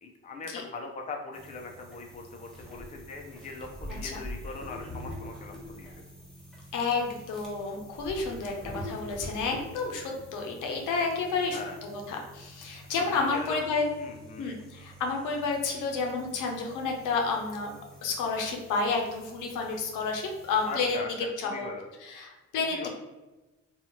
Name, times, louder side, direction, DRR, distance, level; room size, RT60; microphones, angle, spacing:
voice 1, 0.0-6.0 9.5-9.6 11.5-11.8 12.9-13.6 14.0-14.5 20.6-21.1 21.4-21.9 22.6-22.9, left 4 dB, 25° left, 2 dB, 0.5 m, -40 dB
sound 1, 1.3-21.0, equal, ahead, 1.0 m, -46 dB
voice 2, 6.7-13.8 14.4-17.7 18.0-21.0 21.4-21.7 22.0-22.8, left 4 dB, 85° left, 1 dB, 0.7 m, -30 dB
2.7 x 2.3 x 2.9 m, 1.1 s
cardioid pair, 90°, 30 cm